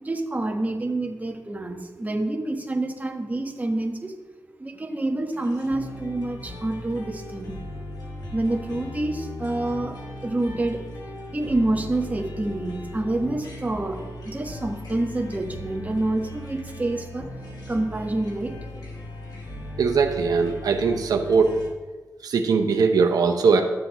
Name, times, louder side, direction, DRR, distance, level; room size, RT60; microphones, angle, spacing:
voice 1, 0.0-4.1 4.6-7.6 8.2-10.8 11.3-17.3 17.7-18.6, right 2 dB, 25° right, 2 dB, 1.2 m, -27 dB
sound 1, 5.3-21.7, left 1 dB, 80° left, 2.0 m, -38 dB
voice 2, 19.8-21.6 22.2-23.6, right 5 dB, 80° right, 4 dB, 0.7 m, -20 dB
12.0 x 7.7 x 3.0 m, 1.3 s
cardioid pair, 60°, 7 cm